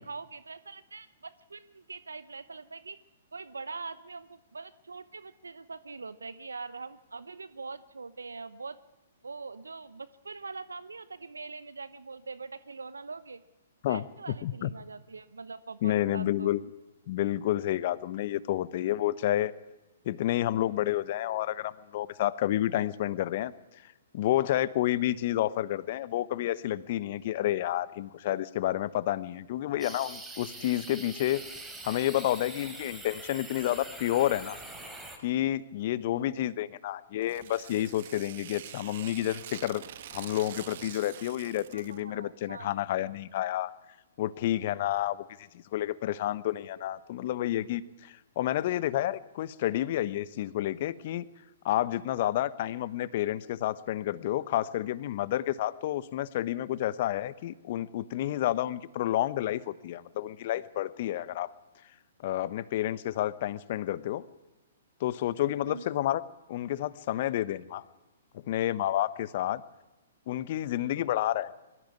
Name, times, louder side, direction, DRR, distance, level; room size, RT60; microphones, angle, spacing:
voice 1, 0.0-3.0 3.3-8.8 9.2-13.4 13.8-16.5 36.1-36.5 41.7-42.8 65.6-65.8, right 4 dB, 80° right, 16 dB, 0.7 m, -43 dB
voice 2, 15.8-16.6 17.1-19.5 20.0-23.5 24.1-31.4 31.8-34.6 35.2-39.8 40.1-43.7 44.2-45.2 45.7-51.2 51.6-61.5 62.2-64.2 65.0-66.2 66.5-67.8 68.3-69.6 70.3-71.5, left 13 dB, 50° left, 17 dB, 1.0 m, -30 dB
sound 1, 29.8-35.2, right 2 dB, 10° right, 3.4 m, -44 dB
Tearing, 37.2-42.0, right 11 dB, 55° right, 1.2 m, -45 dB
22.0 x 14.5 x 9.7 m, 1.1 s
figure-of-eight pair, 120°, 0 cm